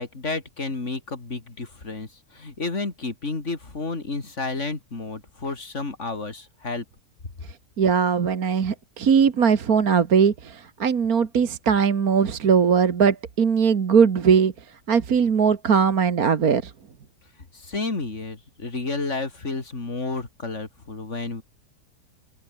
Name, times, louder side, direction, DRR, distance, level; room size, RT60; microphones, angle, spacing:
voice 1, 0.0-6.8 17.5-21.4, left 3 dB, 45° left, 3.6 m, -31 dB
voice 2, 7.8-14.5 14.9-16.7, right 6 dB, 65° right, 2.0 m, -20 dB
open air
omnidirectional pair, 1.7 m